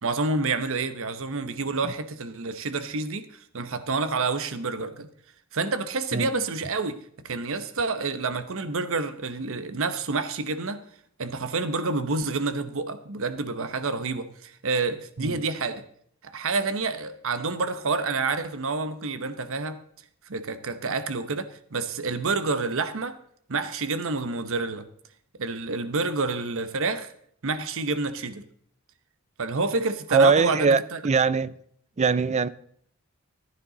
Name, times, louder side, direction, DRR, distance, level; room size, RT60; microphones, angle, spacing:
voice 1, 0.0-3.3 3.5-5.1 5.5-7.0 7.2-10.8 11.2-15.8 16.2-19.8 20.3-23.1 23.5-24.8 25.4-27.1 27.4-28.4 29.4-31.0, right 3 dB, 65° right, 0.9 m, -28 dB
voice 2, 30.1-31.5 32.0-32.5, right 4 dB, 30° right, 0.5 m, -22 dB
15.0 x 9.9 x 3.8 m
head